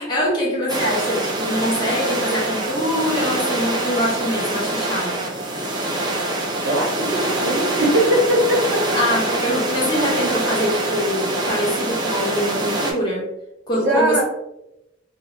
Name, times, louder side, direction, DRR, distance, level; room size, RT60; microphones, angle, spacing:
voice 1, 0.0-5.3 8.9-13.3 13.7-14.2, equal, 25° left, -4 dB, 0.8 m, -23 dB
sound 1, 0.7-12.9, right 2 dB, 20° right, 0.4 m, -24 dB
voice 2, 6.6-9.2 13.7-14.2, right 1 dB, 75° right, -2 dB, 0.9 m, -20 dB
2.9 x 2.3 x 2.6 m, 0.87 s
head